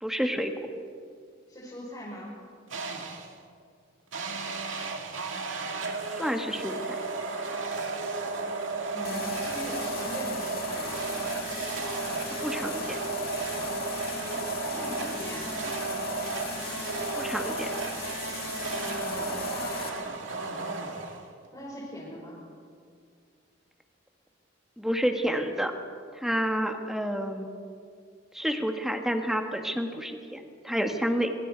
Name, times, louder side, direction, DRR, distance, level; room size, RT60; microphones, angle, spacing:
voice 1, 0.0-0.5 6.1-7.0 12.4-13.0 17.1-17.7 24.8-25.7 26.1-27.5 28.3-31.3, equal, ahead, 4 dB, 1.5 m, -29 dB
voice 2, 1.5-2.3 8.9-10.9 14.6-15.6 18.9-20.0 21.5-22.4, equal, 20° left, -7 dB, 5.0 m, -40 dB
sound 1, 2.7-3.4 4.1-21.5, right 3 dB, 80° right, 2.2 m, -33 dB
sound 2, 9.0-19.9, left 6 dB, 50° left, 2.0 m, -39 dB
25.5 x 23.5 x 4.6 m, 2.2 s
head